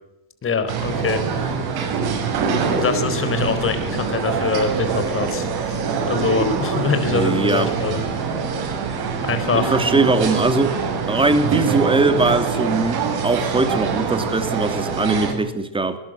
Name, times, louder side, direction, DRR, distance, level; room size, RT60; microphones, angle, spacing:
voice 1, 0.4-1.6 2.6-5.8 6.1-8.5 9.2-9.8, left 5 dB, 25° left, 9 dB, 4.4 m, -24 dB
sound 1, 0.7-15.3, right 5 dB, 50° right, 7.1 m, -24 dB
voice 2, 7.1-7.7 9.5-10.8 11.1-16.0, right 3 dB, 10° right, 8 dB, 2.7 m, -20 dB
21.0 x 20.0 x 8.0 m, 0.81 s
cardioid pair, 140°, 50 cm